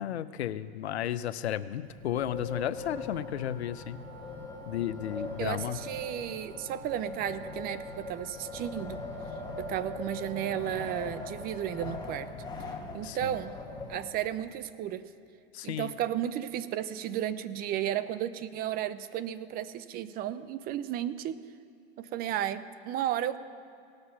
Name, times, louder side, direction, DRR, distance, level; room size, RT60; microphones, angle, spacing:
voice 1, 0.0-4.0 4.7-5.8 13.0-13.4 15.5-15.9, left 11 dB, 85° left, 15 dB, 0.6 m, -33 dB
Wind, 1.9-14.5, left 3 dB, 15° left, 1.3 m, -41 dB
Wind instrument woodwind instrument, 2.3-12.2, right 3 dB, 70° right, 2.4 m, -53 dB
voice 2, 5.4-9.0 9.6-12.3 12.9-13.6 13.9-15.1 15.6-21.4 22.0-23.4, right 11 dB, 30° right, 14 dB, 0.4 m, -33 dB
18.5 x 6.7 x 5.8 m, 2.6 s
hypercardioid pair, 115°, 32 cm